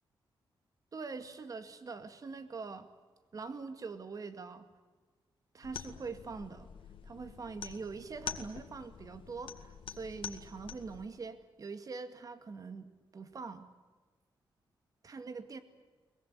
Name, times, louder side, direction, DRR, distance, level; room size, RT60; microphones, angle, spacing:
voice 1, 0.9-2.9 3.3-4.7 5.5-6.7 7.0-12.9 13.1-13.7 15.0-15.6, right 4 dB, 45° right, 10 dB, 2.1 m, -43 dB
sound 1, 5.6-11.0, left 7 dB, 80° left, 2.0 m, -46 dB
23.0 x 21.0 x 9.7 m, 1.4 s
wide cardioid pair, 130°, 9 cm